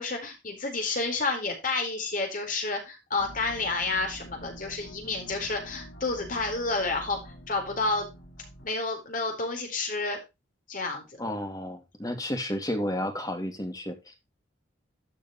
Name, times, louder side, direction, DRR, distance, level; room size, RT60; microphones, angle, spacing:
voice 1, 0.0-8.1 8.6-10.2 10.7-11.0, left 3 dB, 45° left, 3 dB, 4.2 m, -30 dB
sound 1, 3.2-8.7, equal, 70° left, 4.2 m, -46 dB
voice 2, 11.2-14.2, left 1 dB, 20° left, 6 dB, 2.2 m, -32 dB
13.0 x 7.0 x 3.1 m, 0.24 s
head